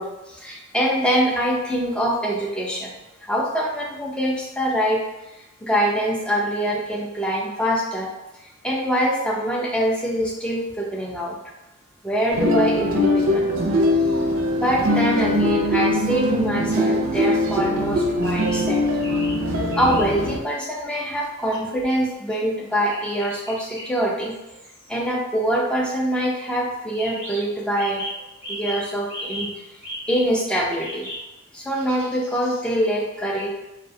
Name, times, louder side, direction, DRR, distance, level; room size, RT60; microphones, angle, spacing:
voice 1, 0.0-2.9 3.2-5.0 5.6-8.1 8.6-11.4 12.0-13.5 13.9-14.1 14.5-18.8 19.8-24.3 24.9-28.0 28.5-29.6 30.1-31.1 31.5-33.5, equal, 5° left, -3 dB, 0.4 m, -24 dB
sound 1, 12.3-20.4, left 1 dB, 70° right, 0.4 m, -21 dB
sound 2, 18.2-18.6 19.0-19.4 19.7-20.1 21.5-22.4 22.7-24.0 24.3-25.7 26.3-26.4 26.9-29.5 29.8-30.2 30.8-31.2 31.7-32.7, left 1 dB, 60° left, 1.1 m, -36 dB
2.3 x 2.2 x 2.6 m, 1.0 s
head